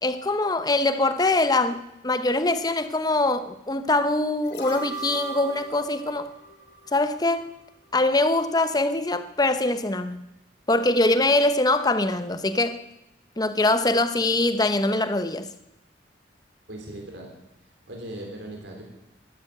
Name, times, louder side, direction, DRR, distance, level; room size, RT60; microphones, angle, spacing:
voice 1, 0.0-1.8 2.0-6.3 6.9-7.5 7.9-10.2 10.7-12.8 13.4-15.5, left 2 dB, 20° left, 11 dB, 0.9 m, -23 dB
sound 1, 4.4-7.6 7.9-8.0, right 4 dB, 55° left, 2.8 m, -38 dB
voice 2, 16.7-17.3 17.9-18.8, right 1 dB, 70° right, 0 dB, 3.7 m, -38 dB
12.0 x 12.0 x 9.1 m, 0.88 s
head